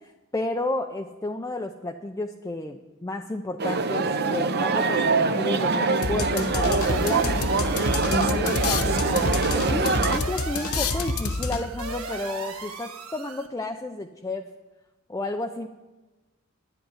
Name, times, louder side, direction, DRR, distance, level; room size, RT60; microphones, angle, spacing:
voice 1, 0.0-7.4 8.0-14.5 15.1-15.7, left 2 dB, 15° left, 4 dB, 0.4 m, -32 dB
sound 1, 3.6-10.2, right 4 dB, 50° right, 0.7 m, -24 dB
sound 2, 6.0-11.9, left 3 dB, 80° left, 0.9 m, -28 dB
sound 3, 6.8-13.5, right 4 dB, 80° right, 1.5 m, -38 dB
10.5 x 7.9 x 9.9 m, 1.1 s
head